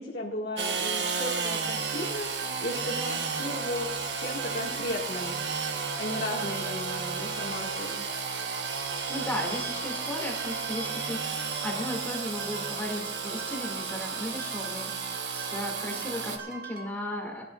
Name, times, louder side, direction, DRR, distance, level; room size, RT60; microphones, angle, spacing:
voice 1, 0.0-5.4 6.0-8.1, left 1 dB, 65° left, -4 dB, 1.9 m, -35 dB
Engine / Sawing, 0.6-16.4, right 5 dB, 90° right, 1.0 m, -33 dB
sound 1, 1.0-16.9, right 4 dB, 60° right, 1.3 m, -42 dB
voice 2, 8.9-17.4, left 1 dB, 10° left, -1 dB, 2.2 m, -36 dB
20.5 x 12.0 x 2.4 m, 0.99 s
head